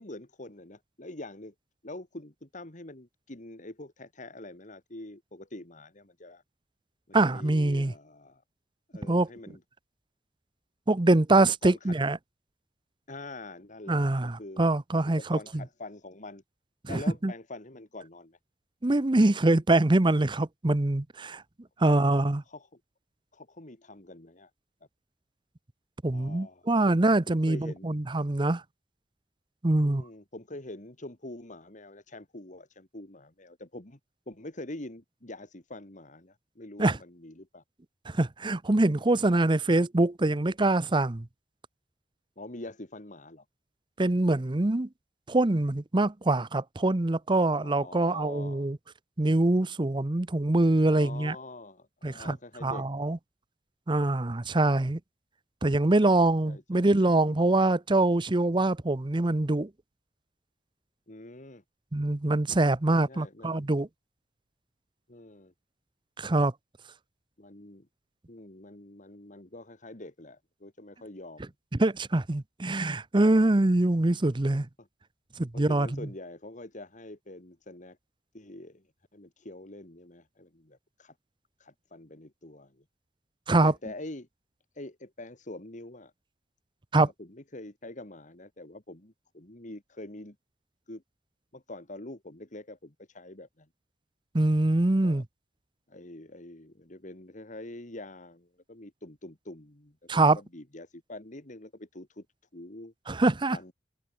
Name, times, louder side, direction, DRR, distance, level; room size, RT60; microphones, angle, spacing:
voice 1, 0.0-1.5 1.8-6.4 7.1-8.4 8.9-9.6 11.6-11.9 13.1-14.6 15.1-16.4 16.9-18.4 21.8-22.0 22.5-22.8 23.3-24.5 26.1-27.0 27.3-28.0 29.8-34.0 34.3-37.6 39.7-39.8 42.4-43.4 47.6-48.7 50.9-52.9 56.4-56.9 61.1-61.6 62.9-63.7 65.1-65.5 67.4-67.9 68.3-71.5 73.4-73.5 74.8-74.9 75.5-78.0 78.3-78.8 79.1-81.1 81.6-82.8 83.6-84.3 84.7-86.1 86.9-90.4 90.9-91.0 91.5-93.7 95.0-95.2 95.9-102.3 102.5-102.9 103.5-103.7, left 2 dB, 45° left, 2.5 m, -45 dB
voice 2, 7.1-7.9 9.1-9.3 10.9-12.2 13.9-15.4 16.8-17.3 18.8-21.4 21.8-22.4 26.0-28.6 29.6-30.0 36.8-37.0 38.1-41.3 44.0-44.9 45.3-48.8 49.2-51.4 52.0-52.4 52.6-53.2 53.9-55.0 55.6-59.7 61.9-63.9 66.2-66.5 71.8-74.7 75.4-76.0 83.5-83.7 86.9-87.1 94.3-95.2 100.1-100.4 103.1-103.6, right 2 dB, 25° right, 0.7 m, -24 dB
head